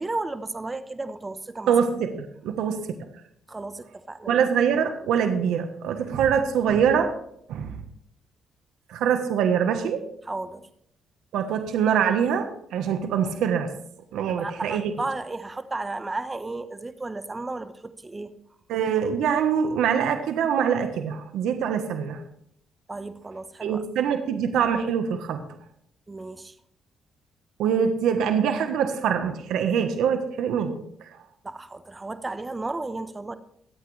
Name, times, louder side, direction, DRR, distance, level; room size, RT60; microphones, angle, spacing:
voice 1, 0.0-1.8 3.5-4.4 10.2-10.7 14.3-18.3 22.9-23.8 26.1-26.5 31.4-33.4, right 2 dB, 20° right, 11 dB, 1.1 m, -33 dB
voice 2, 1.7-2.8 4.3-7.1 7.5-7.8 8.9-10.0 11.3-13.7 14.1-14.9 18.7-22.2 23.6-25.4 27.6-30.8, right 7 dB, 85° right, 7 dB, 1.3 m, -24 dB
23.0 x 8.6 x 3.4 m, 0.71 s
cardioid pair, 90°, 0 cm